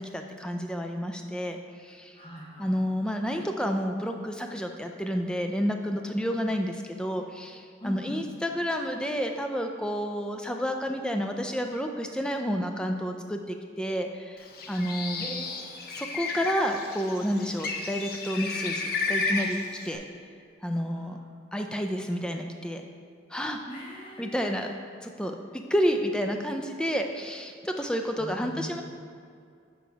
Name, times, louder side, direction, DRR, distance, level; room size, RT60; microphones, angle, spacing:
voice 1, 0.0-2.2 2.6-15.2 16.0-20.0 20.6-21.2 21.5-22.8 23.3-23.6 24.2-24.7 25.0-28.8, equal, 5° left, 4 dB, 0.3 m, -30 dB
voice 2, 2.1-2.7 6.2-6.5 7.8-8.1 15.2-15.6 23.6-24.7 28.2-28.8, equal, 25° left, -5 dB, 0.9 m, -41 dB
Bird, 14.4-20.0, left 3 dB, 55° left, 0.5 m, -33 dB
6.7 x 4.0 x 4.6 m, 2.3 s
head